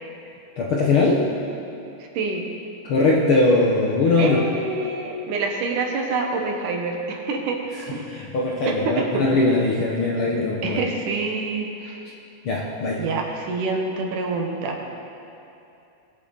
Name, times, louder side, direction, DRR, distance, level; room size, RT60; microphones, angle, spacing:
voice 1, 0.6-1.3 2.8-4.4 7.7-10.8 12.4-13.1, left 2 dB, 65° left, -3 dB, 1.4 m, -21 dB
voice 2, 4.2-7.6 7.9-8.1 8.7-9.2 10.6-12.0 13.0-14.8, right 3 dB, 80° right, 2 dB, 2.8 m, -26 dB
21.5 x 7.8 x 4.0 m, 2.7 s
omnidirectional pair, 3.6 m